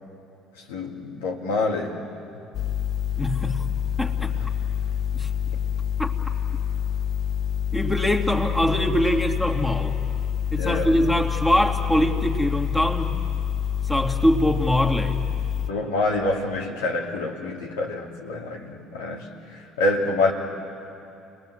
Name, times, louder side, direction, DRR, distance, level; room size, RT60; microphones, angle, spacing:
voice 1, 0.5-2.0 4.3-4.4 10.6-10.9 15.7-20.3, left 2 dB, 80° left, 0 dB, 2.7 m, -27 dB
sound 1, 2.5-15.7, left 9 dB, 55° left, 0.8 m, -27 dB
voice 2, 3.2-3.7 4.0-4.3 5.1-5.3 6.0-6.1 7.7-10.0 10.5-13.1 13.9-15.2, equal, 10° left, 1 dB, 2.7 m, -23 dB
30.0 x 20.5 x 7.9 m, 2.7 s
hypercardioid pair, 60°, 0 cm